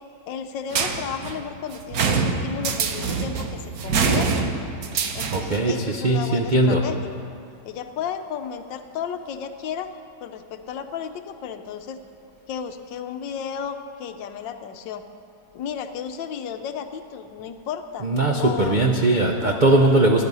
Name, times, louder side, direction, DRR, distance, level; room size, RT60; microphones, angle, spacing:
voice 1, 0.3-4.5 5.1-7.1 7.6-9.9 10.2-12.0 12.5-15.0 15.5-18.1 18.4-18.8 19.5-19.6, left 7 dB, 80° left, 8 dB, 1.4 m, -33 dB
sound 1, 0.7-5.7, right 5 dB, 60° right, 1.3 m, -25 dB
voice 2, 5.3-6.8 18.0-20.2, right 2 dB, 90° right, 2 dB, 0.4 m, -19 dB
15.5 x 10.5 x 5.4 m, 2.5 s
omnidirectional pair, 2.0 m